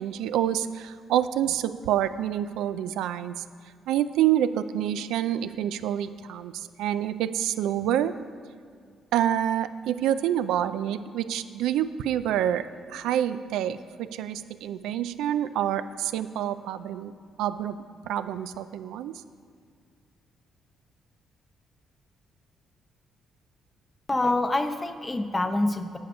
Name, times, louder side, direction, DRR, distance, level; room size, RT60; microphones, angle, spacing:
voice 1, 0.0-3.4 3.9-8.2 9.1-12.6 12.9-17.1 17.4-17.8 18.1-19.1, right 11 dB, 90° right, 12 dB, 0.4 m, -27 dB
voice 2, 24.1-26.0, left 2 dB, 20° left, 8 dB, 0.7 m, -26 dB
9.3 x 6.5 x 5.4 m, 2.1 s
cardioid pair, 90°, 0 cm